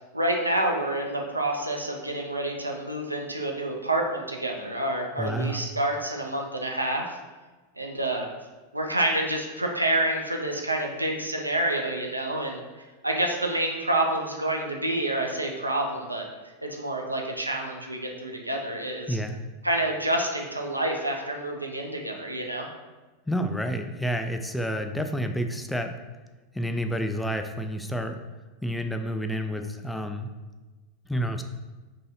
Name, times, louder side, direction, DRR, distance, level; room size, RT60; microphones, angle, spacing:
voice 1, 0.1-7.2 7.8-8.3 8.7-12.6 13.0-16.3 16.6-19.2 19.6-22.7, right 1 dB, 90° right, 1 dB, 0.4 m, -28 dB
voice 2, 5.2-5.6 19.1-19.4 23.3-25.9 26.5-28.2 28.6-30.3 31.1-31.4, equal, 5° left, 6 dB, 0.3 m, -29 dB
3.0 x 2.7 x 4.1 m, 1.3 s
figure-of-eight pair, 85°, 0 cm